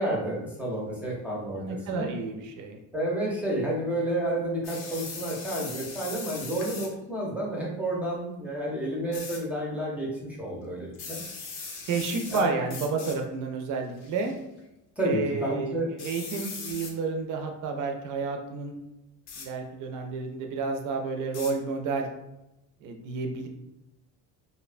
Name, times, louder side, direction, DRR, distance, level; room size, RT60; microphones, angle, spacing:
voice 1, 0.0-2.1 2.9-10.1 10.4-11.2 12.3-12.7 15.0-15.9, right 1 dB, 5° right, -4 dB, 0.4 m, -30 dB
voice 2, 1.5-2.8 11.9-14.4 15.0-15.7 16.0-18.8 19.4-22.1 22.8-23.5, right 4 dB, 60° right, 4 dB, 0.4 m, -31 dB
sound 1, 4.6-6.9 9.1-9.4 10.9-12.4 12.7-13.2 14.0-14.3 16.0-16.9 19.3-19.5 21.3-21.5, left 4 dB, 50° left, 0.5 m, -39 dB
2.7 x 2.1 x 2.4 m, 0.91 s
cardioid pair, 160°, 36 cm